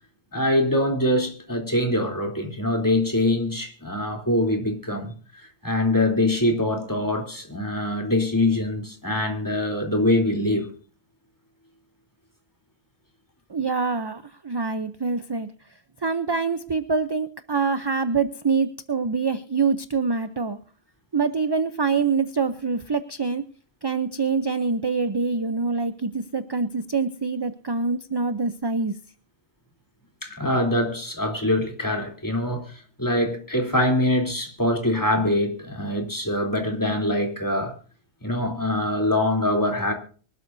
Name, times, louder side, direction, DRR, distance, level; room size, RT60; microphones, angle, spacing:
voice 1, 0.3-5.1 5.6-10.7 30.2-32.7 33.0-37.7 38.2-39.9, left 1 dB, 15° left, 3.3 m, -23 dB
voice 2, 13.5-15.5 16.0-20.6 21.1-23.4 23.8-28.9, right 4 dB, 30° right, 0.6 m, -25 dB
24.5 x 12.5 x 2.7 m
omnidirectional pair, 1.1 m